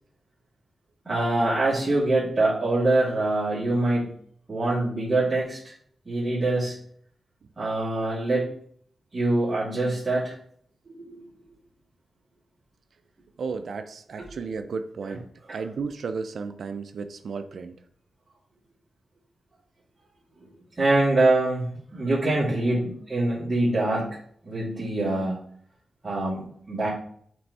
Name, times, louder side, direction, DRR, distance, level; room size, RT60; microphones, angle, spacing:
voice 1, 1.1-4.1 4.5-5.7 6.1-6.8 7.6-8.5 9.1-10.3 10.9-11.2 14.2-14.3 20.8-24.2 24.5-25.3 26.0-26.9, right 2 dB, 35° right, -9 dB, 2.6 m, -24 dB
voice 2, 13.4-15.3 15.5-17.8, right 5 dB, 70° right, 8 dB, 0.4 m, -33 dB
7.7 x 3.4 x 4.1 m, 0.62 s
cardioid pair, 85°, 0 cm